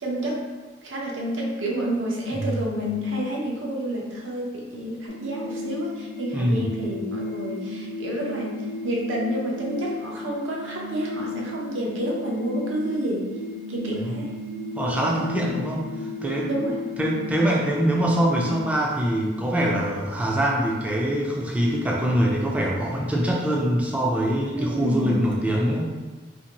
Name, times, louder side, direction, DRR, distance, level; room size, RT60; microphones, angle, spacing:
voice 1, 0.0-0.5 0.8-13.3 13.7-14.3 16.4-16.8 24.6-25.4, equal, 85° right, -3 dB, 0.7 m, -29 dB
sound 1, 5.1-18.7, left 2 dB, 80° left, 0.5 m, -34 dB
voice 2, 6.3-6.7 14.0-14.1 14.8-15.9 16.2-16.5 17.0-25.9, right 1 dB, 5° right, -3 dB, 0.4 m, -23 dB
2.6 x 2.5 x 2.8 m, 1.3 s
head